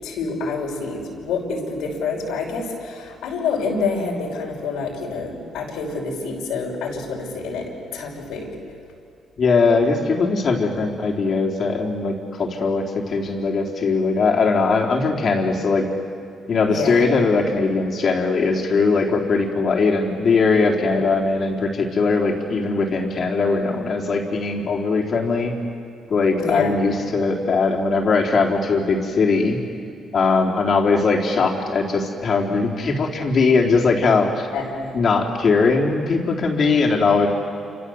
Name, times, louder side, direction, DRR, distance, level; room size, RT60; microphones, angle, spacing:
voice 1, 0.0-8.5 16.7-17.1 20.9-21.0 26.4-26.8 34.5-34.9, left 4 dB, 90° left, -1 dB, 5.7 m, -27 dB
voice 2, 9.4-15.9 16.5-25.5 26.1-29.6 30.1-34.5 34.9-37.3, left 4 dB, 50° left, 1 dB, 3.9 m, -20 dB
28.5 x 26.5 x 8.0 m, 2.5 s
cardioid pair, 90°, 0 cm